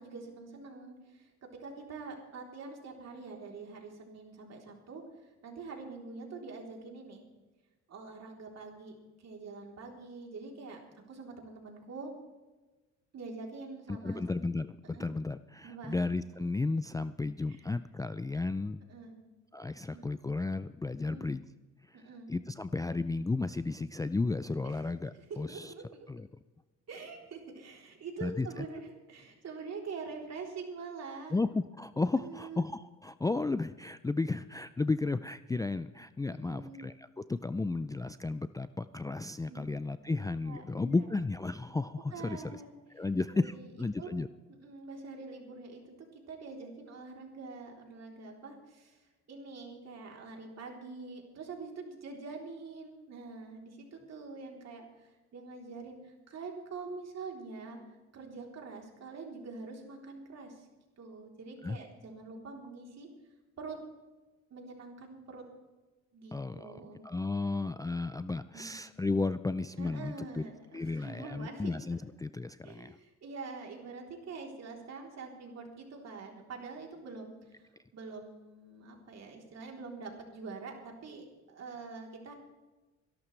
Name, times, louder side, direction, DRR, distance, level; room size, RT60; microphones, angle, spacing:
voice 1, 0.0-7.2 7.9-10.8 11.1-12.1 13.1-14.2 14.9-15.1 15.6-16.0 17.5-17.6 18.9-19.2 19.9-20.1 21.0-21.3 21.9-22.3 24.6-24.8 25.1-26.1 26.9-31.4 32.2-32.7 36.3-36.9 39.5-39.7 40.1-40.2 40.5-41.1 42.1-42.8 43.4-43.7 44.0-44.1 44.6-45.8 46.3-57.8 58.1-60.7 61.0-63.1 63.6-63.8 64.5-65.5 66.1-67.0 68.5-68.7 69.8-71.7 72.6-77.7 77.9-82.3, right 4 dB, 60° right, 1 dB, 3.6 m, -45 dB
voice 2, 14.0-18.8 19.5-21.4 21.9-22.0 22.3-25.7 26.1-26.3 28.2-28.5 31.3-42.6 42.9-44.3 61.6-61.8 66.3-70.4 70.7-73.0, left 3 dB, 10° left, 13 dB, 0.4 m, -33 dB
24.0 x 12.0 x 3.3 m, 1.2 s
cardioid pair, 90°, 30 cm